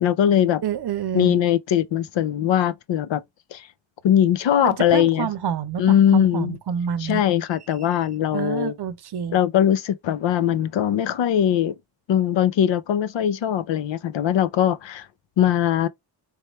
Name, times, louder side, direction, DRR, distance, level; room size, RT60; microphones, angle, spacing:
voice 1, 0.0-0.6 1.1-3.2 3.5-3.7 4.0-5.3 5.8-6.6 7.0-8.7 9.3-11.7 12.1-15.1 15.4-15.9, left 10 dB, 65° left, 0.6 m, -20 dB
voice 2, 0.6-1.4 4.6-7.2 8.3-9.4, right 8 dB, 55° right, 0.7 m, -28 dB
3.4 x 3.1 x 3.0 m
cardioid pair, 60°, 48 cm